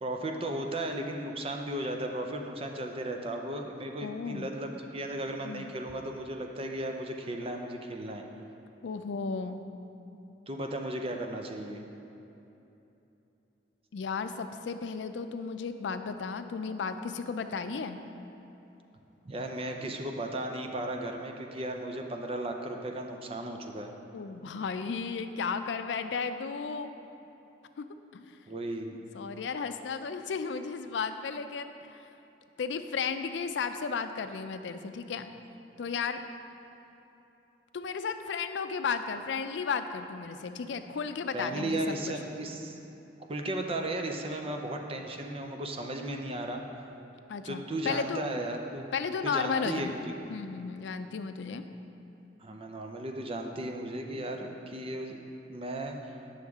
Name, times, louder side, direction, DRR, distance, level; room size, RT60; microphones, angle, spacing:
voice 1, 0.0-8.2 10.5-11.9 19.2-23.9 28.5-28.9 41.3-42.8 43.3-46.6 47.4-48.8 49.2-50.1 52.4-55.2 55.5-56.2, right 1 dB, 35° right, 3 dB, 0.6 m, -35 dB
voice 2, 4.0-4.5 5.4-5.7 8.8-9.6 13.9-18.0 24.1-26.9 27.8-27.9 28.1-28.4 29.1-32.0 32.6-35.3 35.8-36.2 37.7-42.1 47.3-48.2 48.9-49.9 50.3-51.6, left 5 dB, 85° left, 9 dB, 0.4 m, -34 dB
9.4 x 6.4 x 3.6 m, 3.0 s
head